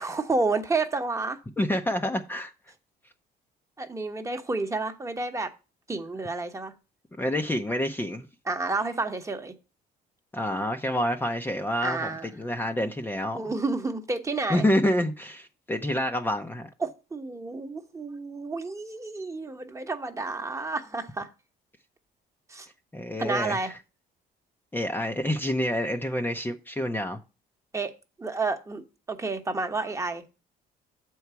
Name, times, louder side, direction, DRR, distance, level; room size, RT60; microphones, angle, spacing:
voice 1, 0.0-1.4 3.8-5.5 5.9-6.7 8.4-9.5 11.8-12.3 13.3-14.6 16.8-21.3 22.5-22.7 23.2-23.7 27.7-28.8 29.1-30.2, right 3 dB, 15° right, 1.1 m, -30 dB
voice 2, 1.6-2.5 7.2-8.3 10.3-12.1 12.4-13.5 14.5-16.7 22.9-23.7 24.7-27.2, left 1 dB, 10° left, 0.7 m, -28 dB
7.1 x 4.7 x 6.9 m
cardioid pair, 110°, 17 cm